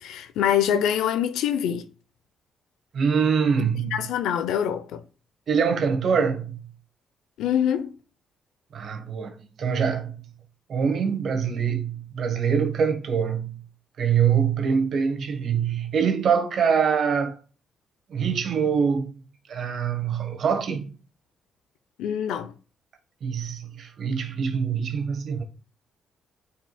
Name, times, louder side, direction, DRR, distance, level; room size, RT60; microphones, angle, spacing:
voice 1, 0.0-1.9 3.8-5.0 7.4-7.9 22.0-22.5, left 9 dB, 85° left, 0.7 m, -25 dB
voice 2, 2.9-4.0 5.5-6.6 8.7-10.2 10.7-13.6 14.0-17.4 18.1-19.2 19.5-20.9 23.2-25.4, right 6 dB, 60° right, 1.4 m, -24 dB
9.1 x 4.8 x 2.3 m
cardioid pair, 90°, 0 cm